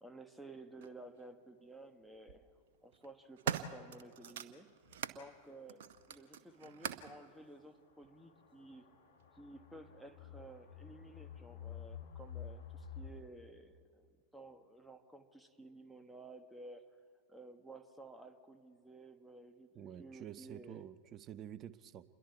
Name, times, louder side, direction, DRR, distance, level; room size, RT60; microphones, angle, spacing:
voice 1, 0.0-2.5 2.8-4.7 5.1-8.9 9.3-16.9 17.3-20.8, right 2 dB, ahead, 8 dB, 1.3 m, -54 dB
sound 1, 0.8-0.9 2.0-2.4 2.9-5.2 5.7-7.2 8.0-8.1, right 8 dB, 55° right, 0.9 m, -42 dB
sound 2, 4.9-5.0 5.3-5.4 5.9-6.0 6.9-13.1, left 8 dB, 60° left, 3.5 m, -51 dB
voice 2, 19.8-22.0, right 10 dB, 30° right, 16 dB, 0.7 m, -49 dB
28.0 x 22.0 x 4.6 m, 2.3 s
figure-of-eight pair, 90°, 0 cm